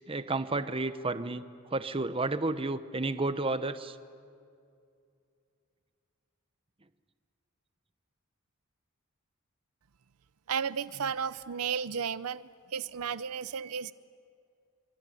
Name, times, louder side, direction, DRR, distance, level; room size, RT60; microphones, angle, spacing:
voice 1, 0.1-4.0, right 2 dB, 25° right, 11 dB, 0.9 m, -31 dB
voice 2, 10.5-12.4 12.7-13.9, right 7 dB, 90° right, 16 dB, 0.6 m, -33 dB
25.5 x 24.0 x 9.2 m, 2.4 s
head